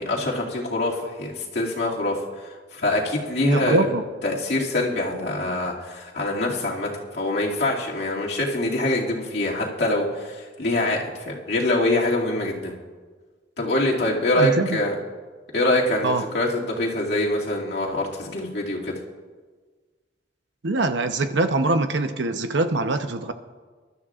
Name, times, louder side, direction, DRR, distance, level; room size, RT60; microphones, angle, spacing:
voice 1, 0.0-3.9 4.2-12.7 13.6-14.9 15.5-19.0, left 1 dB, 65° left, -4 dB, 2.4 m, -24 dB
voice 2, 3.4-4.0 14.4-14.8 16.0-16.2 20.6-23.3, right 2 dB, 80° right, 8 dB, 0.8 m, -23 dB
23.0 x 12.5 x 2.5 m, 1.4 s
head